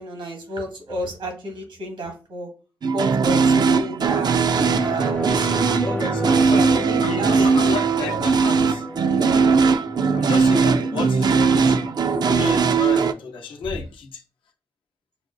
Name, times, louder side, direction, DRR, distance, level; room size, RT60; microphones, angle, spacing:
voice 1, 0.0-2.5 2.9-4.4 4.8-7.4 10.9-11.3, right 1 dB, 85° right, 1.6 m, -32 dB
sound 1, 2.8-13.1, right 5 dB, 55° right, 0.4 m, -19 dB
sound 2, 4.2-13.2 13.6-13.7, left 1 dB, 15° left, 0.4 m, -33 dB
voice 2, 6.0-6.7 7.0-8.9 10.1-14.2, left 5 dB, 85° left, 0.7 m, -32 dB
5.8 x 2.2 x 2.5 m
cardioid pair, 50°, 9 cm